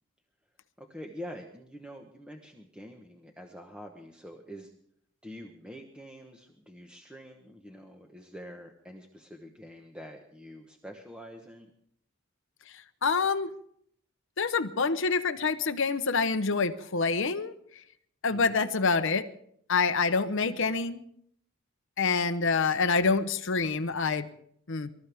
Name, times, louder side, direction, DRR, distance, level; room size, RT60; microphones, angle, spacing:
voice 1, 0.8-4.7 5.2-11.7 18.3-18.6 20.4-20.8, equal, 5° right, 2 dB, 1.1 m, -46 dB
voice 2, 13.0-13.5 14.4-17.5 18.2-19.3 19.7-21.0 22.0-24.3 24.7-24.9, left 4 dB, 60° left, 10 dB, 0.8 m, -26 dB
25.0 x 14.0 x 3.5 m, 0.67 s
head